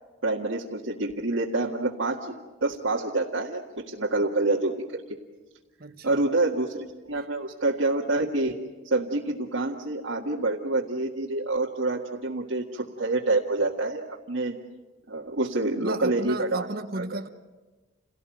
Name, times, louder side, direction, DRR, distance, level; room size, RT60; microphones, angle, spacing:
voice 1, 0.2-5.0 6.0-8.6 8.8-14.6 15.1-16.7 17.0-17.1, right 2 dB, 70° right, 1.9 m, -27 dB
voice 2, 5.8-6.2 7.2-7.3 15.8-17.3, right 2 dB, 45° right, 1.2 m, -35 dB
29.5 x 18.0 x 9.2 m
head